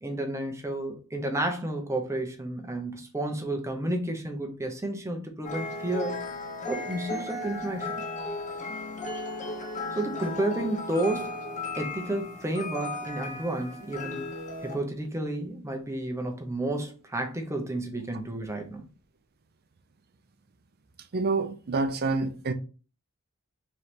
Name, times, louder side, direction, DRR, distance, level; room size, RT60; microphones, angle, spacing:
voice 1, 0.0-6.3 6.7-8.0 10.0-11.4 11.8-14.2 14.6-18.9, right 1 dB, 15° right, 0.8 m, -31 dB
sound 1, 5.4-14.8, left 2 dB, 35° left, 0.9 m, -35 dB
voice 2, 21.1-22.5, right 3 dB, 45° right, 0.5 m, -27 dB
4.5 x 3.3 x 2.9 m
head